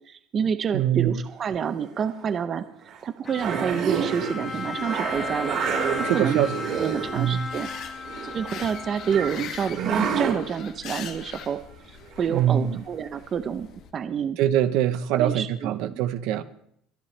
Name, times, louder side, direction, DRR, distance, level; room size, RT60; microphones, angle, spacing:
voice 1, 0.0-2.6 3.0-5.6 6.0-6.4 6.7-7.7 8.2-11.6 12.2-13.7 13.9-14.4 15.1-16.0, right 7 dB, 30° right, 11 dB, 0.7 m, -28 dB
voice 2, 0.7-1.2 6.0-6.5 7.2-7.5 12.3-12.8 14.4-16.4, right 11 dB, 65° right, 12 dB, 0.9 m, -23 dB
sound 1, 1.6-2.0 2.9-3.0 3.3-7.2 7.5-8.8 9.1-10.4 12.2-12.3 12.7-12.8, right 7 dB, 50° right, 4.4 m, -29 dB
Bowed string instrument, 3.2-9.7, left 4 dB, 20° left, 1.0 m, -36 dB
sound 2, 6.9-13.9, left 8 dB, 50° left, 1.5 m, -42 dB
23.0 x 10.5 x 3.3 m, 0.69 s
cardioid pair, 155°, 0 cm